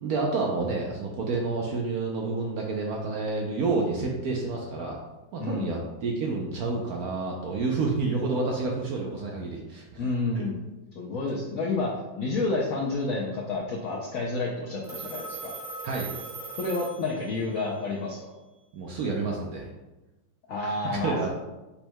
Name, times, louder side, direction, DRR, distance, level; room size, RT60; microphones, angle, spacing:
voice 1, 0.0-5.0 5.3-10.0 10.4-10.5 15.8-16.1 18.7-19.7 20.6-21.3, right 3 dB, 70° right, 0 dB, 0.9 m, -29 dB
voice 2, 5.4-5.7 10.0-10.6 10.9-15.5 16.6-18.3 20.5-21.3, left 3 dB, 70° left, -2 dB, 0.8 m, -30 dB
Telephone, 14.8-17.6, right 3 dB, ahead, 0.7 m, -39 dB
5.4 x 2.2 x 4.4 m, 1.1 s
omnidirectional pair, 2.0 m